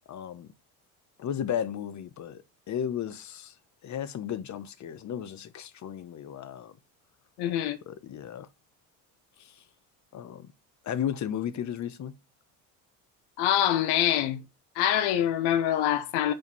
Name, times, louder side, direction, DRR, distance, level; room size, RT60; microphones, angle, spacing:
voice 1, 0.1-0.5 1.2-3.5 3.8-6.7 7.9-8.5 9.4-9.5 10.1-10.5 10.8-12.1, left 9 dB, 45° left, 1.0 m, -34 dB
voice 2, 7.4-7.8 13.4-14.4 14.7-16.3, left 11 dB, 75° left, 1.0 m, -25 dB
5.1 x 5.0 x 5.4 m
supercardioid pair, 95°, 40 cm